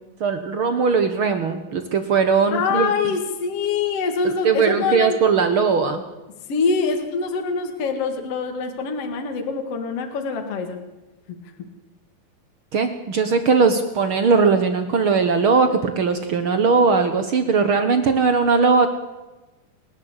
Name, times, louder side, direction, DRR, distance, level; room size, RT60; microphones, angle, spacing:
voice 1, 0.2-3.1 4.4-6.0 12.7-18.9, right 5 dB, 70° right, 9 dB, 1.2 m, -19 dB
voice 2, 2.5-5.2 6.5-10.8 11.3-11.4, left 5 dB, 45° left, 4 dB, 2.7 m, -24 dB
29.0 x 11.5 x 8.2 m, 1.1 s
omnidirectional pair, 4.3 m